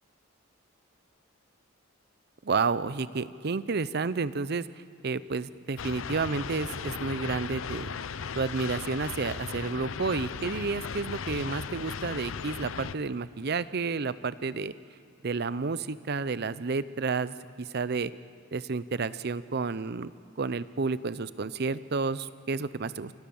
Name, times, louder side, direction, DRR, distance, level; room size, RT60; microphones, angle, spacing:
voice 1, 2.4-4.7 5.0-7.9 8.4-14.7 15.2-18.1 18.5-23.1, right 4 dB, 55° right, 16 dB, 0.6 m, -31 dB
sound 1, 5.8-12.9, left 6 dB, 85° left, 0.6 m, -36 dB
28.5 x 25.0 x 7.1 m, 2.4 s
head